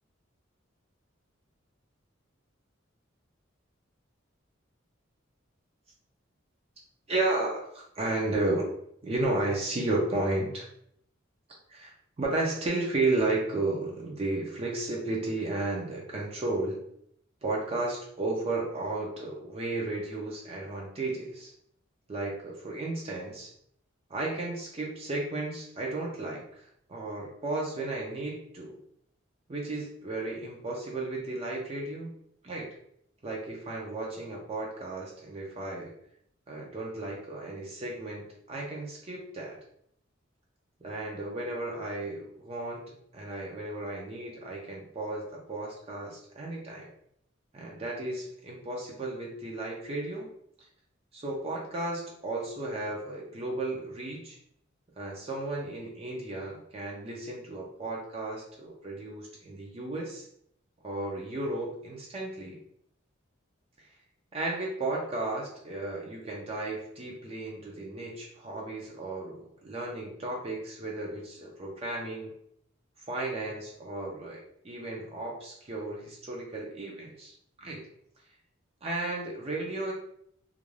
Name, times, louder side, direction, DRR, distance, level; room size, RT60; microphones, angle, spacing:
voice 1, 7.1-8.7 9.0-10.7 11.7-16.8 17.4-21.5 22.1-23.5 24.1-26.4 26.9-28.8 29.5-32.1 32.4-32.7 33.2-35.9 36.5-39.6 40.8-42.8 43.1-46.9 47.5-50.3 51.1-54.4 55.0-60.3 60.8-62.6 64.3-72.3 73.1-77.8 78.8-79.9, right 2 dB, 30° right, -2 dB, 0.5 m, -33 dB
2.4 x 2.2 x 3.1 m, 0.69 s
head